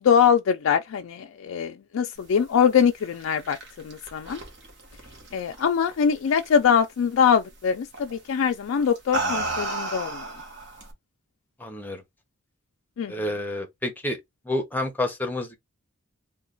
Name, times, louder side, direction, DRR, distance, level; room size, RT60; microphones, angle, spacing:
voice 1, 0.0-3.6 3.8-4.4 5.3-10.3 13.0-13.1, left 7 dB, 75° left, 0.3 m, -23 dB
sound 1, 3.0-5.9 6.3-6.7 7.9-8.2 8.8-10.9, right 2 dB, 55° right, 1.1 m, -32 dB
voice 2, 11.6-12.0 13.1-14.2 14.5-15.6, left 1 dB, 10° left, 0.7 m, -29 dB
3.1 x 2.2 x 3.8 m
head